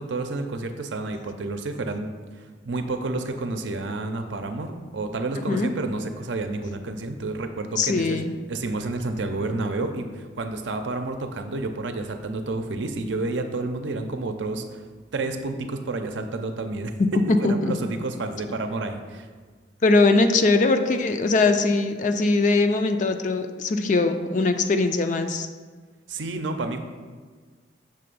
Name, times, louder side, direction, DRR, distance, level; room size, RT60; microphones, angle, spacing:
voice 1, 0.0-2.1 2.4-8.2 8.5-14.8 15.1-16.9 17.3-19.3 26.1-26.8, right 2 dB, 75° right, 7 dB, 0.6 m, -30 dB
voice 2, 7.8-8.3 17.3-17.8 19.8-25.5, left 3 dB, 40° left, 7 dB, 0.4 m, -21 dB
6.7 x 3.3 x 5.3 m, 1.5 s
head